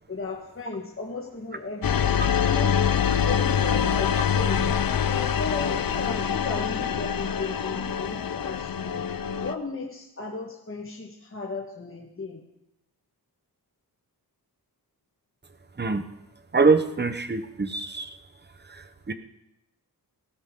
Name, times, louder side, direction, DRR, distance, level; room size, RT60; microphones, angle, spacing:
voice 1, 0.1-2.1 2.4-2.8 3.2-4.7 5.0-9.1 9.4-12.4, left 3 dB, 35° left, -1 dB, 1.6 m, -35 dB
sound 1, 1.8-9.5, left 8 dB, 65° left, 0.7 m, -25 dB
voice 2, 16.5-18.1 18.7-19.1, right 4 dB, 25° right, 9 dB, 0.9 m, -24 dB
18.5 x 15.0 x 3.8 m, 0.86 s
wide cardioid pair, 125°, 38 cm